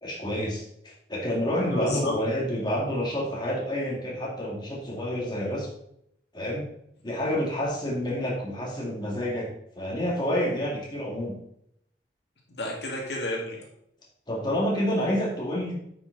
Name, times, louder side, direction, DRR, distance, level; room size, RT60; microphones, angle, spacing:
voice 1, 0.0-5.7 6.3-6.6 7.0-9.5 9.8-11.3 14.3-15.7, equal, 25° left, -4 dB, 2.2 m, -28 dB
voice 2, 1.6-2.6 12.5-13.6, left 1 dB, 70° left, -2 dB, 2.2 m, -32 dB
9.3 x 6.1 x 4.0 m, 0.74 s
head